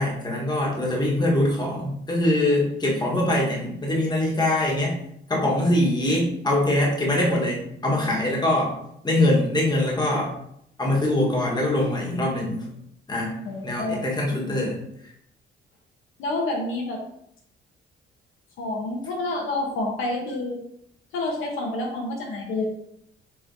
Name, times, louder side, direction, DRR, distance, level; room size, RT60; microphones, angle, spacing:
voice 1, 0.0-5.0 5.3-8.7 9.0-10.3 10.8-12.7 13.1-13.3 13.6-14.7, left 1 dB, 20° left, -3 dB, 1.3 m, -23 dB
voice 2, 13.4-14.1 14.5-14.6 16.2-17.0 18.6-20.6 21.1-22.7, left 2 dB, 80° left, 0 dB, 0.9 m, -28 dB
4.8 x 3.2 x 2.6 m, 0.74 s
cardioid pair, 90°, 20 cm